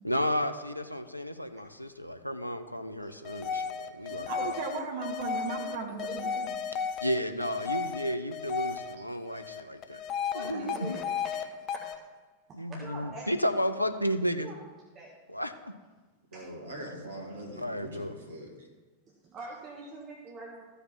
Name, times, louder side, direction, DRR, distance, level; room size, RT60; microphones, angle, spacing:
voice 1, 0.0-4.5 7.0-10.0 10.3-11.0 12.5-14.5 15.3-15.5 17.6-18.2, equal, 90° left, 8 dB, 0.5 m, -32 dB
sound 1, 3.2-8.9 9.3-11.4 11.7-12.0, left 7 dB, 35° left, 0.6 m, -34 dB
voice 2, 4.3-6.6 9.2-9.4 10.5-10.8, right 5 dB, 55° right, 2 dB, 1.5 m, -37 dB
voice 3, 10.3-11.1 11.8-11.9 12.7-13.3 14.4-14.5 14.9-15.1 16.3-16.5 19.2-20.6, right 3 dB, 25° right, -3 dB, 1.6 m, -44 dB
voice 4, 16.3-18.7, right 1 dB, 70° right, 0 dB, 2.0 m, -43 dB
14.5 x 5.0 x 4.4 m, 1.3 s
figure-of-eight pair, 90°, 0 cm